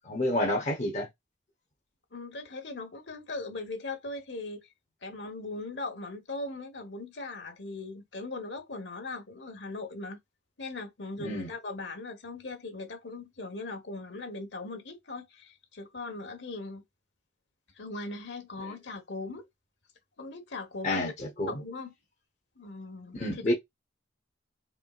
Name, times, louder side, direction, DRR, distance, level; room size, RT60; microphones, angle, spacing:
voice 1, 0.0-1.1 11.2-11.5 20.8-21.5 23.2-23.5, left 1 dB, 40° left, 0.9 m, -29 dB
voice 2, 2.1-4.7 5.0-10.2 10.6-16.8 17.8-19.5 20.2-21.1 21.5-21.9 22.6-23.2 23.5-23.6, left 3 dB, 65° left, 1.2 m, -39 dB
4.5 x 3.3 x 2.4 m
head